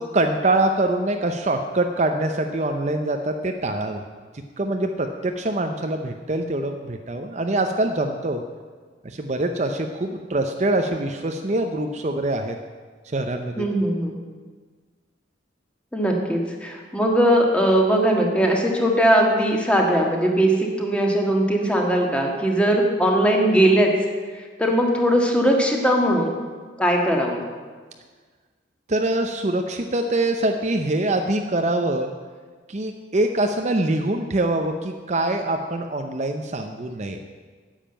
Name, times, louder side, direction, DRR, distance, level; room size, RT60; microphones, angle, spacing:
voice 1, 0.0-4.0 4.6-8.4 9.0-12.6 13.0-13.7 28.9-32.1 32.7-37.2, right 2 dB, 35° right, 5 dB, 0.6 m, -24 dB
voice 2, 13.6-14.2 15.9-23.9 24.3-26.3 26.8-27.4, right 1 dB, 5° left, 0 dB, 1.5 m, -20 dB
10.0 x 7.3 x 8.8 m, 1.5 s
head